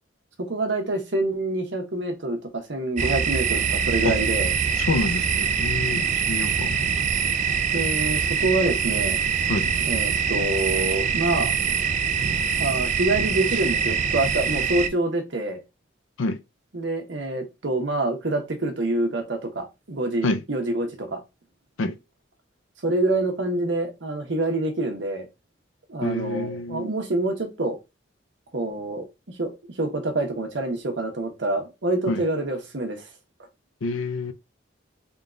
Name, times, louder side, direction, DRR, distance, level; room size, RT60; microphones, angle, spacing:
voice 1, 0.4-4.5 7.7-9.2 9.8-11.5 12.6-15.6 16.7-21.2 22.8-25.3 25.9-27.8 28.5-29.5 29.8-33.1, right 2 dB, 70° right, 1.0 m, -26 dB
sound 1, 3.0-14.9, right 7 dB, 40° right, 0.3 m, -24 dB
voice 2, 4.8-6.9 9.5-9.7 16.2-16.4 20.2-20.4 21.8-22.0 26.0-26.9 32.1-32.2 33.8-34.3, left 2 dB, 90° left, 0.5 m, -27 dB
3.6 x 2.3 x 3.7 m
head